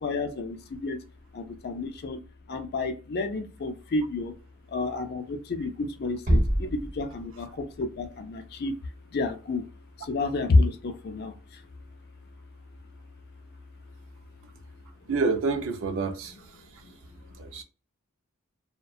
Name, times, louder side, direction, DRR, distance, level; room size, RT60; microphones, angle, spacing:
voice 1, 0.0-1.0 1.3-2.2 2.5-4.3 4.7-8.7 9.1-9.6 10.1-11.3, left 3 dB, 45° left, 0.4 m, -29 dB
Bass drum, 6.3-7.7, equal, 35° right, 0.8 m, -26 dB
voice 2, 15.1-16.8 17.4-17.6, right 4 dB, 60° right, 0.4 m, -29 dB
2.6 x 2.1 x 2.3 m
head